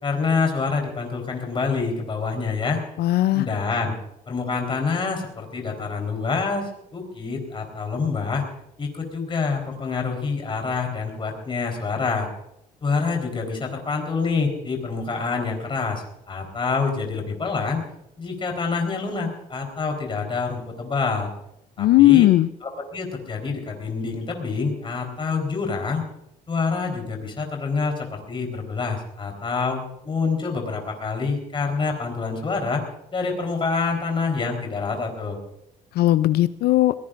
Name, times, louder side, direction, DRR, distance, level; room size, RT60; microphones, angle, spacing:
voice 1, 0.0-2.8 3.3-3.9 4.3-8.5 8.8-12.3 12.8-17.8 18.2-21.3 21.8-22.3 22.9-26.0 26.5-32.8 33.1-35.4, left 4 dB, 30° left, 2 dB, 4.0 m, -26 dB
voice 2, 3.0-3.5 21.8-22.5 35.9-36.9, left 15 dB, 70° left, 15 dB, 0.5 m, -17 dB
22.0 x 17.5 x 2.6 m, 0.81 s
cardioid pair, 110°, 17 cm